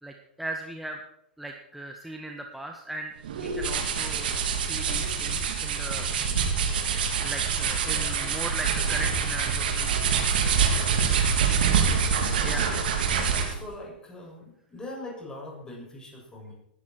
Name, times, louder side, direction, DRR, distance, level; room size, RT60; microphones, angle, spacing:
voice 1, 0.0-1.0 1.4-6.1 7.2-9.9 12.4-13.0, right 1 dB, ahead, 2 dB, 1.5 m, -38 dB
sound 1, 3.2-13.6, right 6 dB, 65° right, 3.3 m, -25 dB
voice 2, 11.4-11.8 13.2-16.5, left 1 dB, 15° left, -1 dB, 7.1 m, -42 dB
19.5 x 11.5 x 4.6 m, 0.77 s
hypercardioid pair, 105°, 5 cm